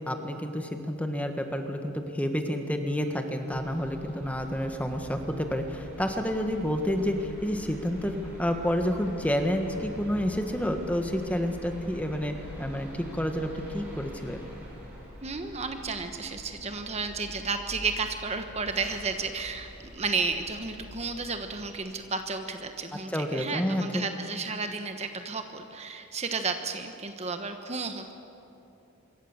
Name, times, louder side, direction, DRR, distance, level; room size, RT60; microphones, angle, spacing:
voice 1, 0.1-14.4 23.1-24.0, equal, 5° left, 5 dB, 1.6 m, -29 dB
sound 1, 3.5-21.7, equal, 10° right, 7.7 m, -45 dB
voice 2, 15.2-28.1, right 4 dB, 30° right, 6 dB, 1.2 m, -32 dB
26.0 x 23.0 x 7.3 m, 2.9 s
head